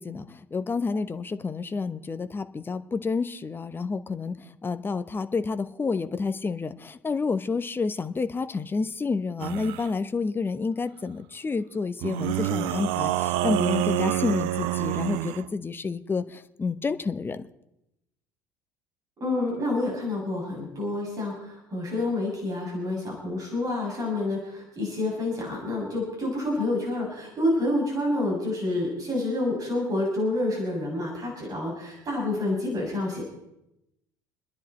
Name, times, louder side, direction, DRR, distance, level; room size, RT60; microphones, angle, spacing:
voice 1, 0.0-4.3 4.6-17.5, left 4 dB, 20° left, 11 dB, 1.0 m, -29 dB
sound 1, 9.4-9.9 12.0-15.5, right 16 dB, 60° right, 0.5 m, -27 dB
voice 2, 19.2-33.2, left 2 dB, 35° right, -3 dB, 7.4 m, -28 dB
28.5 x 10.5 x 4.4 m, 0.86 s
figure-of-eight pair, 60°, 10 cm